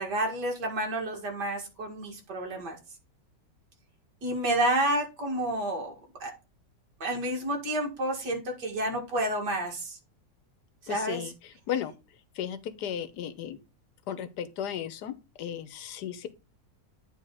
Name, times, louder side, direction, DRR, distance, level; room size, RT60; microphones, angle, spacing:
voice 1, 0.0-2.8 4.2-5.9 6.2-6.3 7.0-10.0 10.8-11.2, right 1 dB, 65° right, 2.6 m, -30 dB
voice 2, 10.9-11.9 12.3-13.6 14.1-16.3, left 9 dB, 70° left, 1.3 m, -35 dB
9.4 x 3.6 x 4.8 m
omnidirectional pair, 1.9 m